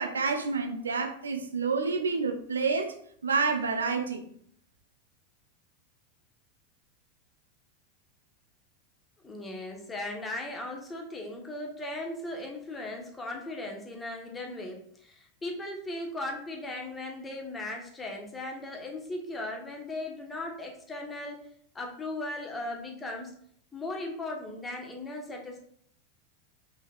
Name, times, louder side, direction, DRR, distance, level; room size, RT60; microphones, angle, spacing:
voice 1, 0.0-2.9 3.2-4.2, right 4 dB, 80° right, 0.5 m, -28 dB
voice 2, 9.2-21.4 21.7-23.3 23.7-25.6, left 2 dB, 20° left, 1.1 m, -37 dB
5.2 x 3.5 x 2.3 m
figure-of-eight pair, 90°, 0 cm